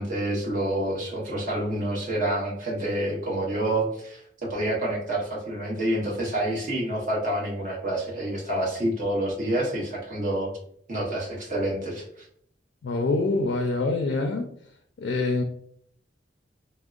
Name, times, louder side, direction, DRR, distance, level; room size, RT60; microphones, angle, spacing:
voice 1, 0.0-10.5 10.9-12.3, right 1 dB, 50° right, -3 dB, 0.9 m, -28 dB
voice 2, 12.8-14.5 15.0-15.4, left 3 dB, 75° left, 4 dB, 0.3 m, -25 dB
3.6 x 2.0 x 2.4 m, 0.66 s
head